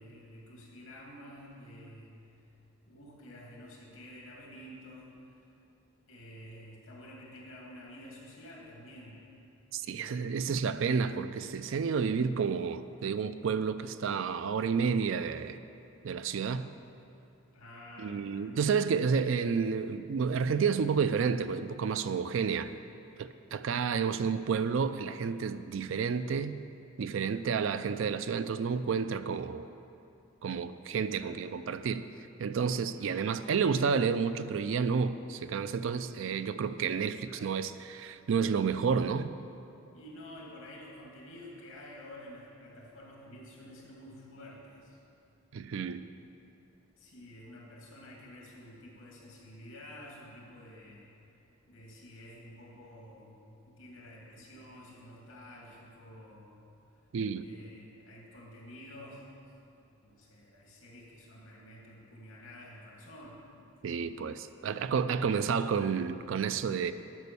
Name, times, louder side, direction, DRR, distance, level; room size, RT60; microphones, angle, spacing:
voice 1, 0.0-2.4 2.8-5.5 6.1-9.2 9.8-10.6 17.5-18.6 31.1-31.4 32.9-33.2 37.2-37.5 39.9-45.0 46.9-51.1 51.7-56.6 57.4-59.3 60.0-63.7 64.6-65.8, left 1 dB, 75° left, -3 dB, 2.4 m, -50 dB
voice 2, 9.7-15.6 16.0-16.7 18.0-22.7 23.2-26.6 27.0-29.7 30.4-32.0 32.4-39.3 45.5-46.0 57.1-57.5 63.8-66.9, right 6 dB, 65° right, 12 dB, 0.4 m, -30 dB
10.5 x 5.4 x 6.9 m, 2.7 s
head